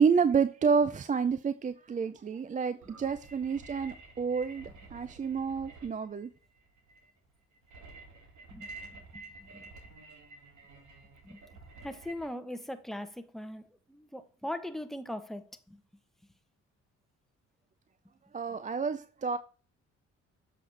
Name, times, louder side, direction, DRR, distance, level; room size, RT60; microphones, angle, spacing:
voice 1, 0.0-6.3 18.3-19.4, right 6 dB, 25° right, 0.4 m, -29 dB
sound 1, 2.8-12.3, right 3 dB, 70° right, 2.0 m, -50 dB
voice 2, 8.5-9.7 11.2-11.4 11.8-15.8, left 1 dB, ahead, 0.8 m, -41 dB
7.6 x 5.6 x 3.2 m
cardioid pair, 90°, 30 cm